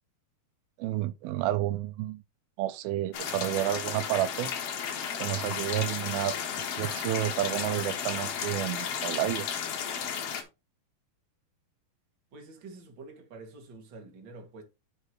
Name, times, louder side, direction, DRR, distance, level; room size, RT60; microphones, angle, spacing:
voice 1, 0.8-2.2 2.6-4.5 5.2-6.4 6.8-9.5, right 14 dB, 85° right, 2.4 m, -30 dB
sound 1, 3.1-10.4, left 7 dB, 60° left, 1.7 m, -34 dB
voice 2, 12.3-14.6, right 3 dB, 40° right, 2.2 m, -47 dB
11.0 x 4.6 x 3.0 m
omnidirectional pair, 4.3 m